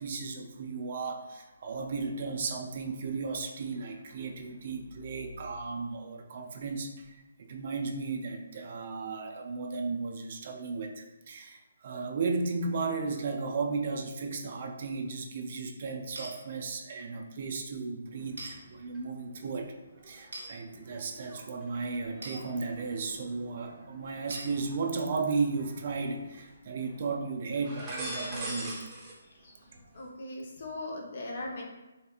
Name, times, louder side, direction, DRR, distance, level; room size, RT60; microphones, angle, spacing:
voice 1, 0.0-19.7 20.0-28.8 29.7-29.8, right 4 dB, 50° right, 4 dB, 0.4 m, -35 dB
sound 1, 16.1-16.3 18.4-18.5 20.3-20.5 22.2-22.4 24.3-24.5, right 2 dB, 80° right, 0.8 m, -40 dB
sound 2, 18.1-19.0 19.4-25.0 25.5-26.5 26.8-27.0 27.5-29.1 29.4-30.1, right 1 dB, 15° right, 0.7 m, -44 dB
voice 2, 29.9-31.6, left 2 dB, 55° left, -1 dB, 0.7 m, -39 dB
3.3 x 2.7 x 2.4 m, 1.1 s
hypercardioid pair, 150°, 0 cm